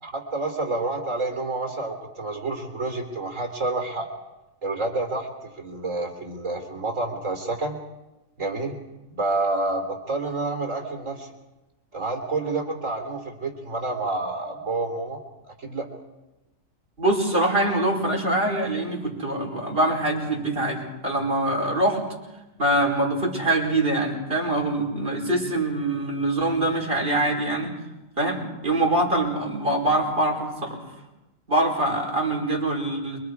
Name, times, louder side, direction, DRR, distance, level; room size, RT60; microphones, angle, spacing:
voice 1, 0.0-4.1 4.6-7.8 8.4-8.8 9.1-11.3 11.9-15.2 15.4-15.9, right 2 dB, 70° right, 3 dB, 3.7 m, -29 dB
voice 2, 17.0-22.0 22.6-27.7 28.2-30.8 31.5-33.2, right 1 dB, 45° right, -2 dB, 5.4 m, -24 dB
28.0 x 24.0 x 4.9 m, 1.0 s
omnidirectional pair, 1.4 m